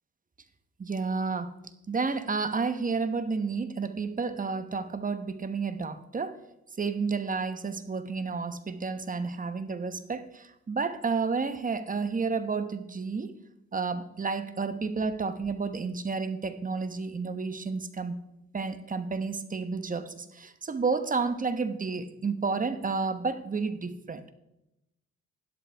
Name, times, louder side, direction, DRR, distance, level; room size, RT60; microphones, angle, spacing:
voice 1, 0.8-1.5 1.9-6.4 6.8-13.3 13.7-18.2 18.5-24.2, right 4 dB, 25° right, 11 dB, 1.1 m, -31 dB
12.5 x 11.0 x 3.5 m, 0.87 s
cardioid pair, 90°, 30 cm